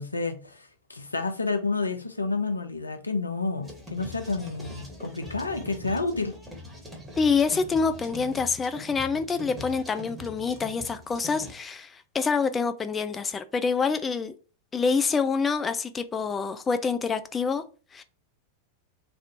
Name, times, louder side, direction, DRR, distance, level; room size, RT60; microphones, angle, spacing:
voice 1, 0.0-6.4, left 3 dB, 80° left, 0.5 m, -30 dB
sound 1, 3.6-11.5, left 1 dB, 10° right, 1.3 m, -42 dB
voice 2, 7.2-14.3 14.7-17.6 17.9-18.0, left 5 dB, 20° left, 0.3 m, -26 dB
3.4 x 2.4 x 4.1 m
figure-of-eight pair, 90°, 0 cm